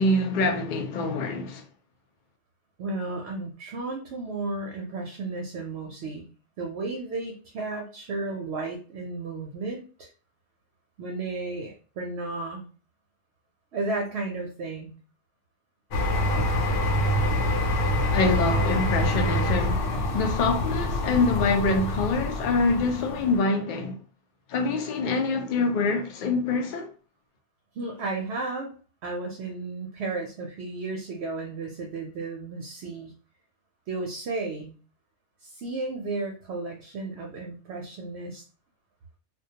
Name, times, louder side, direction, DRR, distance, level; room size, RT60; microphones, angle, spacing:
voice 1, 0.0-1.6 18.1-24.0 24.5-26.9, left 3 dB, 60° left, 0.5 m, -25 dB
voice 2, 2.8-6.3 6.6-10.1 11.0-12.6 13.7-14.9 27.7-28.7 29.0-33.1 33.9-34.7 35.4-38.4, right 3 dB, 65° right, 0.8 m, -33 dB
sound 1, 15.9-23.4, left 1 dB, 75° left, 0.9 m, -26 dB
2.3 x 2.2 x 2.7 m
omnidirectional pair, 1.3 m